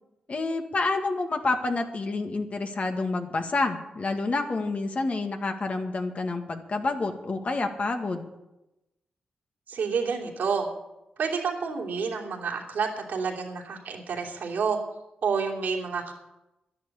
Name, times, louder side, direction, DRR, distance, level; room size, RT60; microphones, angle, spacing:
voice 1, 0.3-8.2, left 3 dB, 50° left, 5 dB, 2.0 m, -28 dB
voice 2, 9.7-10.7 11.2-14.8 15.2-16.1, right 5 dB, 75° right, 0 dB, 2.9 m, -29 dB
11.0 x 10.5 x 8.5 m, 0.95 s
cardioid pair, 55°, 3 cm